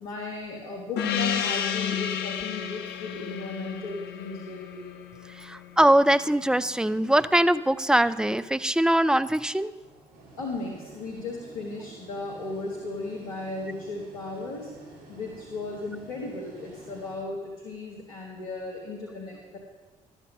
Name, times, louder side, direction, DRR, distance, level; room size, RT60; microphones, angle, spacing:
voice 1, 0.0-4.9 10.4-14.7 15.1-19.6, left 2 dB, 85° left, -1 dB, 1.2 m, -36 dB
Gong, 1.0-6.0, left 8 dB, 70° left, 0.7 m, -31 dB
sound 1, 5.0-6.3 6.9-7.5 8.1-8.7 9.3-17.2, right 2 dB, 50° right, 3.4 m, -51 dB
voice 2, 5.4-9.7, right 1 dB, 5° right, 14 dB, 0.4 m, -22 dB
12.0 x 7.8 x 5.5 m, 1.4 s
hypercardioid pair, 45°, 18 cm